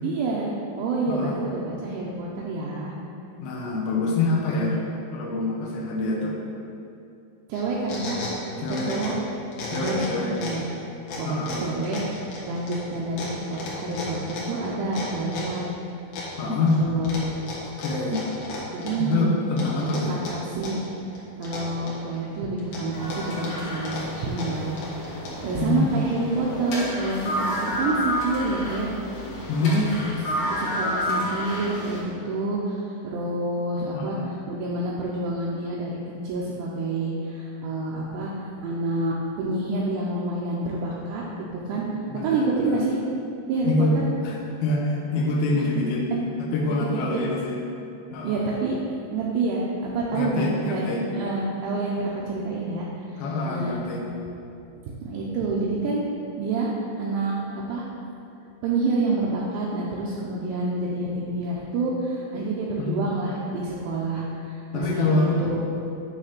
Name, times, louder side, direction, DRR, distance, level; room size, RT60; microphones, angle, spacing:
voice 1, 0.0-2.9 3.9-4.1 4.5-4.8 7.5-8.2 8.7-9.1 9.7-10.7 11.2-12.0 12.5-15.7 16.6-17.3 18.7-19.4 19.8-24.7 25.0-28.9 29.6-29.9 30.5-36.0 36.2-41.2 41.7-41.9 42.2-43.0 43.5-44.1 46.1-46.2 47.1-47.2 48.2-48.8 49.1-50.8 51.1-52.9 53.1-53.8 55.0-56.0 56.4-56.7 57.0-57.4 57.7-57.9 58.6-65.6, right 2 dB, 80° right, -4 dB, 2.6 m, -28 dB
voice 2, 1.1-1.4 3.4-4.8 5.1-6.4 8.6-9.0 9.7-10.3 11.2-11.6 16.4-16.8 17.6-18.2 19.0-20.1 25.6-25.9 29.5-29.8 33.9-34.3 41.9-42.8 43.6-44.0 44.2-46.1 46.4-47.6 48.1-48.4 50.1-51.1 53.2-54.1 62.8-63.0 64.7-65.3, left 3 dB, 90° left, -3 dB, 2.1 m, -26 dB
sound 1, 7.5-9.2 9.5-10.7 11.1-15.6 16.1-16.8 17.0-19.1 19.6-20.9 21.1-22.2 22.6-25.5, left 2 dB, 70° left, 2.0 m, -35 dB
sound 2, 22.9-32.0, equal, 55° left, 2.3 m, -30 dB
9.0 x 3.3 x 6.0 m, 2.6 s
omnidirectional pair, 5.6 m